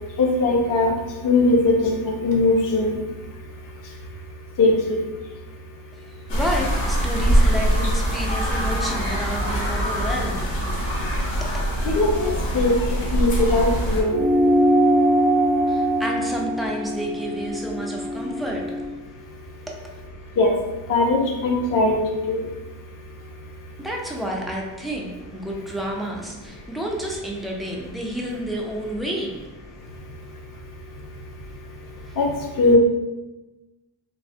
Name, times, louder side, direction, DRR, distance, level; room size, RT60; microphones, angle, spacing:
voice 1, 0.2-0.9 1.2-2.9 4.6-5.0 11.8-12.7 13.1-14.2 20.4-20.5 20.9-22.0 22.3-22.4 32.2-32.3 32.6-32.8, left 2 dB, 40° left, 0 dB, 0.6 m, -19 dB
voice 2, 5.9-11.6 15.7-19.1 19.3-20.0 23.8-29.9 31.5-32.2, right 1 dB, ahead, -2 dB, 0.3 m, -31 dB
sound 1, 6.3-14.0, right 1 dB, 65° left, 1.1 m, -23 dB
sound 2, 14.1-18.9, right 1 dB, 60° right, 0.7 m, -21 dB
3.3 x 2.8 x 2.6 m, 1.1 s
cardioid pair, 120°, 49 cm